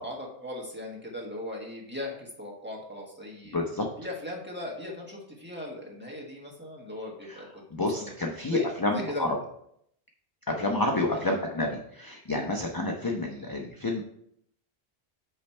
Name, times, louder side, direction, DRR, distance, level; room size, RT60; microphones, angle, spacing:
voice 1, 0.0-3.6 4.0-8.1 8.5-8.7 8.9-9.3 10.5-10.7 11.1-11.3, left 1 dB, 10° right, -3 dB, 1.5 m, -38 dB
voice 2, 3.5-3.9 7.3-7.4 7.7-9.3 10.5-14.0, left 2 dB, 25° left, 1 dB, 0.5 m, -29 dB
8.8 x 3.3 x 4.3 m, 0.71 s
omnidirectional pair, 1.1 m